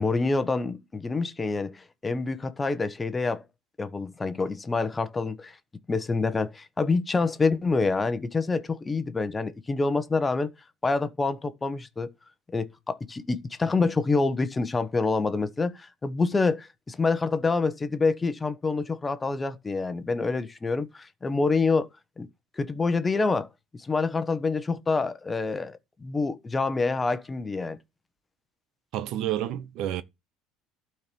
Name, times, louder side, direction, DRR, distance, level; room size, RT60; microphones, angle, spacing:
voice 1, 0.0-3.4 3.8-5.5 5.9-10.5 10.8-12.1 12.5-21.9 22.2-22.3 22.6-23.5 23.7-27.8, left 3 dB, 20° left, 1.2 m, -27 dB
voice 2, 28.9-30.0, right 12 dB, 60° right, 0.9 m, -29 dB
12.0 x 4.5 x 6.8 m
supercardioid pair, 115°, 0 cm